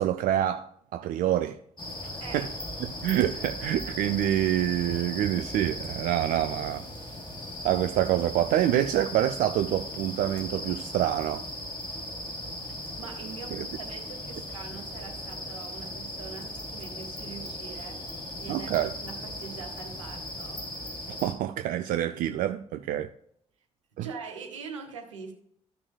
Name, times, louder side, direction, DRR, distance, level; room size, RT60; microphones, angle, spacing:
voice 1, 0.0-1.6 2.3-2.5 2.8-6.9 7.6-11.5 13.5-13.7 18.5-18.9 21.1-23.1 24.0-24.1, right 12 dB, 65° right, 0.5 m, -27 dB
sound 1, 1.8-21.3, left 1 dB, 30° left, 3.6 m, -38 dB
voice 2, 12.7-18.0 18.4-18.7 19.0-20.6 24.0-25.3, right 5 dB, 90° right, 1.3 m, -43 dB
14.0 x 6.2 x 2.3 m
hypercardioid pair, 40°, 16 cm